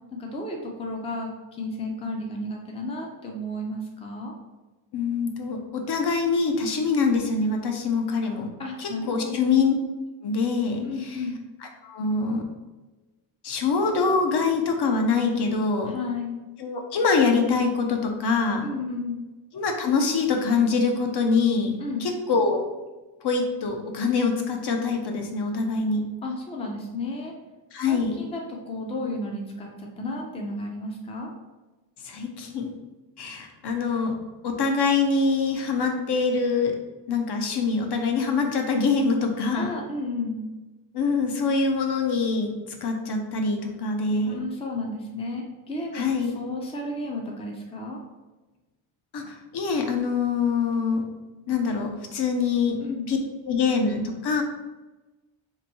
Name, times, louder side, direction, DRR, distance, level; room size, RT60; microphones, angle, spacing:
voice 1, 0.2-4.3 8.6-9.5 10.8-11.4 15.9-16.4 18.6-19.2 21.8-22.1 26.2-27.3 27.9-31.3 39.6-40.5 44.2-48.0 52.8-53.1, left 2 dB, 15° left, 0 dB, 0.4 m, -33 dB
voice 2, 4.9-8.5 8.8-9.7 10.2-11.2 11.8-12.4 13.4-15.9 16.6-18.7 19.5-22.6 23.2-26.0 27.7-28.2 32.0-32.7 33.2-34.2 34.4-36.7 37.1-39.7 40.9-42.5 42.8-44.4 45.9-46.3 49.1-51.0 51.5-52.8 53.1-53.2 53.4-54.4, left 4 dB, 55° left, 3 dB, 0.6 m, -24 dB
3.0 x 2.6 x 4.1 m, 1.1 s
wide cardioid pair, 155°, 49 cm